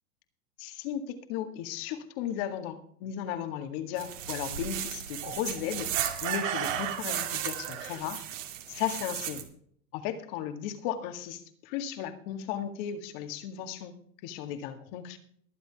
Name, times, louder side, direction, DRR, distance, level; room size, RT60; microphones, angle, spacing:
voice 1, 0.6-5.9 6.2-8.2 8.7-9.5 9.9-13.9 14.2-15.2, left 10 dB, 45° left, 8 dB, 1.9 m, -35 dB
sound 1, 4.0-9.4, right 10 dB, 60° right, 2.6 m, -34 dB
22.5 x 8.0 x 3.5 m, 0.62 s
hypercardioid pair, 125°, 42 cm